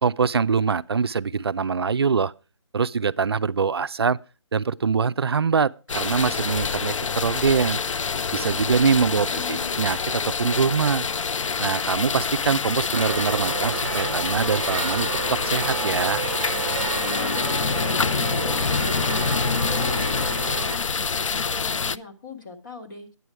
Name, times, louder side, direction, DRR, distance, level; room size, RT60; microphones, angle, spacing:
voice 1, 0.0-2.3 2.7-4.2 4.5-7.8 8.3-11.1 11.6-16.2, right 5 dB, 55° right, 0.4 m, -24 dB
sound 1, 5.9-22.0, left 5 dB, 90° left, 0.5 m, -26 dB
voice 2, 8.5-9.7 17.0-23.1, left 4 dB, 40° left, 2.0 m, -41 dB
sound 2, 12.9-20.8, right 7 dB, 15° right, 1.3 m, -31 dB
9.6 x 8.2 x 4.7 m
hypercardioid pair, 175°, 16 cm